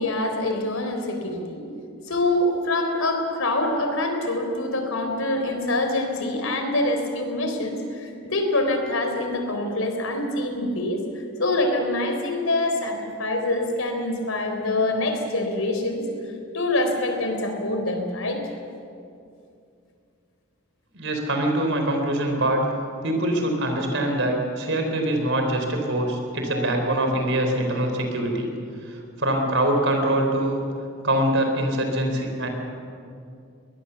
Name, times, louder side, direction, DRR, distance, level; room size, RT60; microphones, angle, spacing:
voice 1, 0.0-1.6 2.1-11.0 11.4-16.0 16.5-18.4 26.5-26.8, left 2 dB, 85° left, 4 dB, 4.1 m, -25 dB
voice 2, 20.9-22.6 23.0-28.5 28.8-30.6 31.0-32.5, right 1 dB, 65° right, 4 dB, 4.2 m, -24 dB
23.0 x 19.5 x 7.1 m, 2.5 s
head